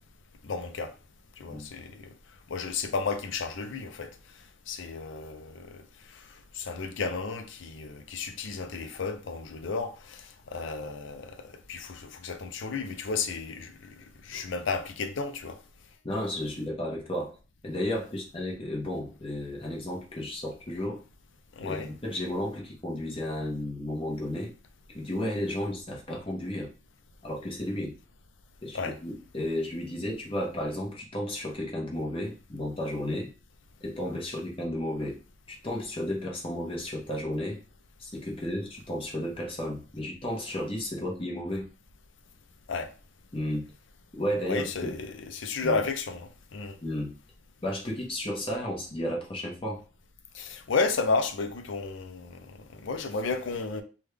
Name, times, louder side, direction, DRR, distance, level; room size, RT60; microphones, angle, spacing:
voice 1, 0.4-0.9 1.4-2.1 2.5-4.1 4.7-5.8 6.1-6.2 6.5-14.0 14.2-15.6 21.6-21.9 28.7-29.0 42.7-42.9 44.5-46.8 50.3-53.8, left 4 dB, 70° left, 0.5 m, -33 dB
voice 2, 16.0-17.3 17.6-21.0 21.6-24.5 24.9-26.7 27.2-27.9 28.6-33.3 33.8-35.2 35.5-37.6 38.0-41.7 43.3-43.6 44.1-44.9 45.6-45.8 46.8-47.1 47.6-49.8, left 1 dB, 25° left, 0.9 m, -33 dB
3.5 x 2.3 x 3.2 m
head